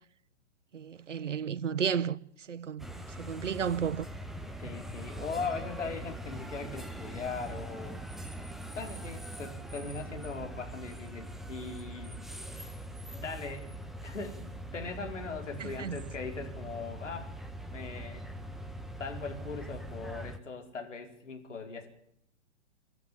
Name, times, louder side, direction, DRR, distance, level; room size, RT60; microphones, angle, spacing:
voice 1, 0.7-2.9 3.2-4.1 15.6-16.0, right 7 dB, 80° right, 1.1 m, -33 dB
sound 1, 2.8-20.4, right 1 dB, ahead, 1.1 m, -42 dB
voice 2, 4.4-8.0 8.7-12.2 13.1-13.8 14.0-14.4 14.7-17.3 17.7-18.3 19.0-21.9, left 4 dB, 80° left, 4.8 m, -39 dB
26.5 x 12.0 x 8.5 m
figure-of-eight pair, 120°, 36 cm